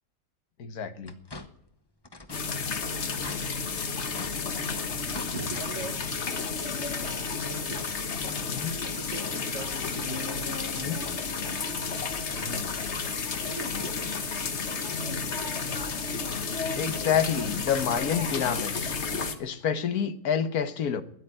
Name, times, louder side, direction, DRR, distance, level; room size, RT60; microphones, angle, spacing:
voice 1, 0.6-1.1 8.5-8.8 10.7-11.0 12.4-12.7 16.8-19.0 19.4-21.0, left 8 dB, 90° left, 1.6 m, -28 dB
sound 1, 1.0-1.7 2.0-2.5 2.8-2.9 3.1-3.4 4.0-4.4 5.0-5.7 6.0-6.2 7.5-7.6 8.1-8.2, left 2 dB, 20° left, 0.8 m, -43 dB
sound 2, 2.3-19.4, left 5 dB, 50° left, 1.4 m, -32 dB
voice 2, 5.3-6.1 7.4-7.8 8.2-8.4 8.9-10.3 13.5-14.3, right 4 dB, 55° right, 1.8 m, -40 dB
13.0 x 10.5 x 9.9 m
omnidirectional pair, 1.6 m